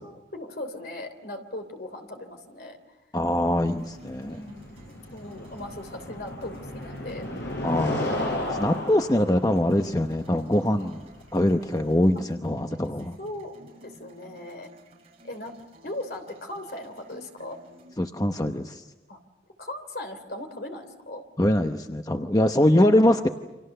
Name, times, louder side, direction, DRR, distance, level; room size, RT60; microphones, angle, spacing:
voice 1, 0.0-2.8 4.2-7.3 13.2-14.7 15.2-15.5 15.8-17.6 19.1-19.2 19.6-21.2, left 1 dB, 55° left, 7 dB, 3.1 m, -38 dB
voice 2, 3.1-4.4 7.6-8.2 8.5-11.0 11.3-13.2 18.0-18.9 21.4-23.3, left 1 dB, 20° left, 6 dB, 0.8 m, -23 dB
sound 1, 3.2-12.1, left 1 dB, 75° left, 6.5 m, -34 dB
sound 2, 3.5-18.0, right 1 dB, 35° right, 6.1 m, -53 dB
29.5 x 26.5 x 6.7 m, 1.1 s
head